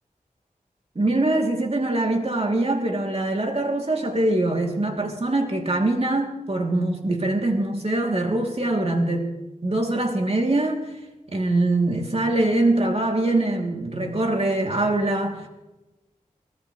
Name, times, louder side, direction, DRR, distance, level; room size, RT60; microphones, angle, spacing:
voice 1, 0.9-9.3 9.6-10.8 11.3-15.5, right 2 dB, 45° right, 1 dB, 3.0 m, -23 dB
23.0 x 18.0 x 3.3 m, 1.0 s
wide cardioid pair, 65°, 14 cm